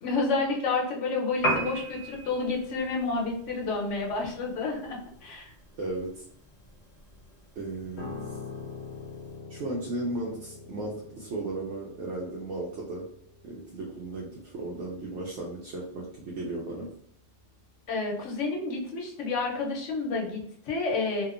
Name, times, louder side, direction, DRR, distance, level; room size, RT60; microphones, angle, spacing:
voice 1, 0.0-5.5 17.9-21.2, left 3 dB, 90° left, -1 dB, 1.1 m, -30 dB
Piano, 1.3-9.4, right 1 dB, 35° left, 0.7 m, -38 dB
voice 2, 5.8-6.2 7.6-8.4 9.5-13.0 13.4-16.9, right 2 dB, 80° right, -4 dB, 0.9 m, -35 dB
Piano 2, 8.0-17.3 17.6-17.9, left 4 dB, 70° left, 0.8 m, -45 dB
2.8 x 2.2 x 2.4 m, 0.66 s
omnidirectional pair, 1.2 m